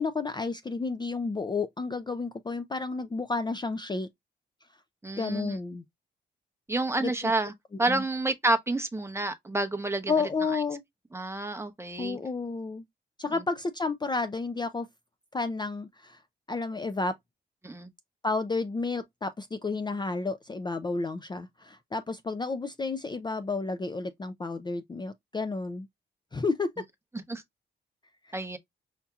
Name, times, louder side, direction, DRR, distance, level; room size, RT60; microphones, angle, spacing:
voice 1, 0.0-4.1 5.2-5.8 7.0-7.3 7.9-8.0 10.1-10.8 12.0-12.8 13.2-14.9 15.3-16.2 16.5-17.1 18.2-25.9 26.3-26.7 28.3-28.4, left 3 dB, 20° left, 0.4 m, -31 dB
voice 2, 5.0-5.6 6.7-7.5 7.8-10.1 11.1-12.2 17.6-17.9 27.3-27.4 28.3-28.6, right 2 dB, 15° right, 0.8 m, -29 dB
5.7 x 2.7 x 2.3 m
cardioid pair, 100°, 20 cm